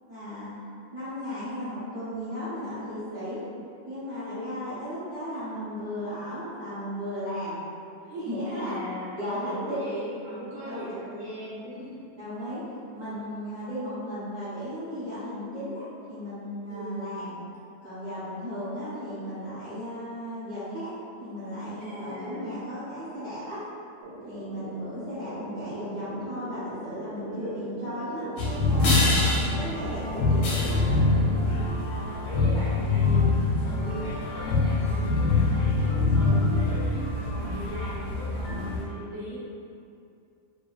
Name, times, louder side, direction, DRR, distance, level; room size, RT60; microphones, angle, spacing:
voice 1, 0.1-0.5 0.9-3.4 3.8-7.6 8.0-8.8 9.1-10.0 10.5-10.9 12.2-12.6 12.9-17.3 17.8-20.9 21.2-23.6 24.2-29.0 29.5-31.0, equal, 35° right, -16 dB, 0.8 m, -35 dB
voice 2, 4.2-4.5 8.4-12.0 16.7-17.2 21.8-22.5 27.2-27.7 31.5-39.3, equal, 40° left, -15 dB, 0.7 m, -39 dB
sound 1, 24.0-31.5, right 1 dB, 85° right, 1.3 m, -41 dB
sound 2, 28.4-38.8, left 3 dB, 85° left, 1.2 m, -24 dB
2.7 x 2.2 x 2.3 m, 2.5 s
omnidirectional pair, 1.8 m